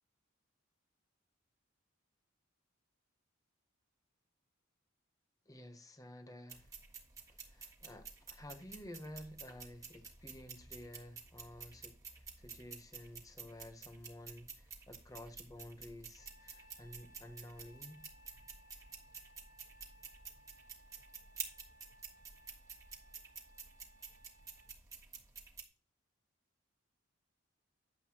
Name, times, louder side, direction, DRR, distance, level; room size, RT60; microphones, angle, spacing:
voice 1, 5.5-6.7 7.2-18.1, left 1 dB, 15° left, 0.9 m, -52 dB
sound 1, 6.5-25.6, right 5 dB, 15° right, 1.6 m, -51 dB
Trumpet, 16.2-24.7, equal, 40° left, 1.3 m, -64 dB
10.5 x 7.9 x 2.9 m
head